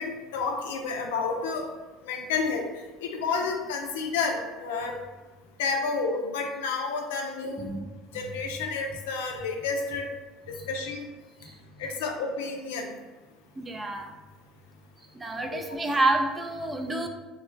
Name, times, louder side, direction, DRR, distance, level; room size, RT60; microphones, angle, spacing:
voice 1, 0.0-1.7 2.0-2.6 3.0-4.9 5.6-7.7 8.1-10.1 10.7-11.1 11.8-12.9 15.5-15.6, left 4 dB, 85° left, 3 dB, 0.4 m, -30 dB
voice 2, 13.6-14.1 15.1-17.1, right 2 dB, 20° right, 5 dB, 0.4 m, -28 dB
2.3 x 2.1 x 3.8 m, 1.2 s
supercardioid pair, 85°, 0 cm